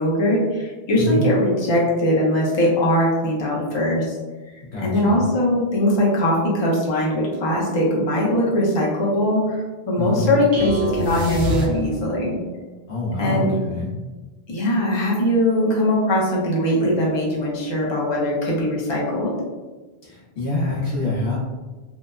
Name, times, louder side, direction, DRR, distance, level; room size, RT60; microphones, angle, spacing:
voice 1, 0.0-4.2 4.8-12.4 13.2-13.5 14.5-19.4, left 1 dB, 35° left, -4 dB, 0.5 m, -21 dB
voice 2, 4.7-5.2 10.0-10.2 12.9-13.9 20.0-21.4, left 2 dB, 80° left, -7 dB, 0.9 m, -25 dB
sound 1, 10.5-12.3, equal, 90° right, 0.9 m, -26 dB
2.8 x 2.0 x 2.3 m, 1.3 s
omnidirectional pair, 1.0 m